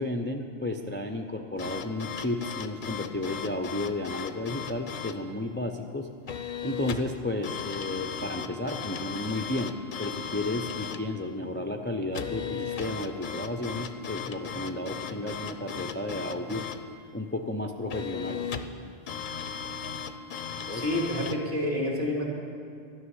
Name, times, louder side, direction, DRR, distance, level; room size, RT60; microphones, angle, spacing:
voice 1, 0.0-6.1 6.6-16.7 17.1-18.4 20.7-20.8, left 2 dB, 15° left, 3 dB, 0.4 m, -33 dB
sound 1, 1.6-5.2 6.3-7.1 7.4-11.0 12.1-16.9 17.9-18.8 19.1-21.4, left 7 dB, 55° left, 0.7 m, -36 dB
voice 2, 20.7-22.3, left 1 dB, 55° right, -2 dB, 2.5 m, -28 dB
12.5 x 6.2 x 9.7 m, 2.3 s
omnidirectional pair, 1.1 m